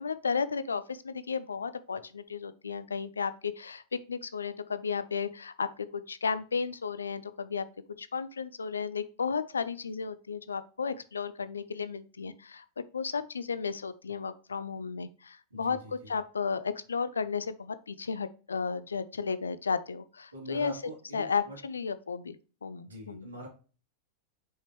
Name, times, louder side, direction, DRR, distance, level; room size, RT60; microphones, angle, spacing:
voice 1, 0.0-3.8 4.1-7.7 8.0-12.6 12.9-20.7 21.1-22.4 22.6-23.3, left 5 dB, 75° left, 14 dB, 0.4 m, -33 dB
voice 2, 15.5-16.1 20.3-21.6 22.8-23.5, right 1 dB, 75° right, -2 dB, 2.7 m, -44 dB
6.4 x 5.3 x 3.1 m, 0.36 s
figure-of-eight pair, 90°, 0 cm